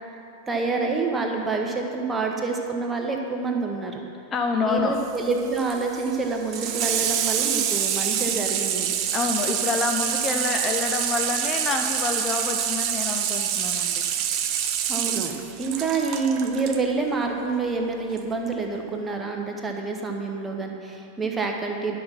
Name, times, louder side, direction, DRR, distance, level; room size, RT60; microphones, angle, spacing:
voice 1, 0.5-4.0 4.6-8.9 14.9-22.0, right 4 dB, 15° right, 2 dB, 1.1 m, -27 dB
voice 2, 4.3-5.0 9.1-14.0, left 4 dB, 25° left, 3 dB, 0.6 m, -27 dB
Water tap faucet / Sink (filling or washing), 5.0-16.8 18.1-18.2, right 9 dB, 40° right, 0.6 m, -27 dB
11.0 x 5.8 x 5.8 m, 2.7 s
figure-of-eight pair, 90°, 0 cm